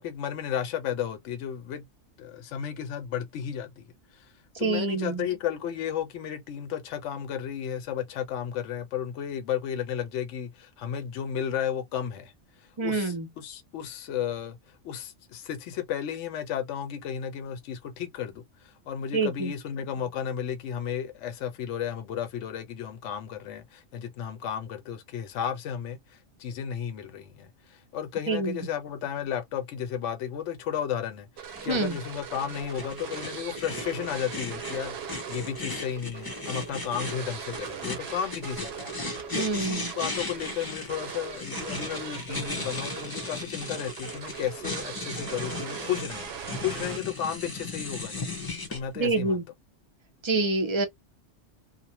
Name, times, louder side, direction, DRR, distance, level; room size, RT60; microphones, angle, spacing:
voice 1, 0.0-1.8 2.2-3.8 4.1-4.3 4.6-12.3 12.8-14.6 14.8-38.7 39.1-48.2 48.7-49.4, left 9 dB, 75° left, 0.9 m, -33 dB
voice 2, 4.6-5.3 12.8-13.3 19.1-19.5 28.3-28.6 31.7-32.0 39.3-39.9 49.0-49.4 50.2-50.9, right 3 dB, 35° right, 0.5 m, -26 dB
sound 1, 31.4-47.3, right 7 dB, 65° right, 0.8 m, -40 dB
sound 2, 31.6-48.8, left 3 dB, 25° left, 0.5 m, -37 dB
2.5 x 2.1 x 2.8 m
omnidirectional pair, 1.3 m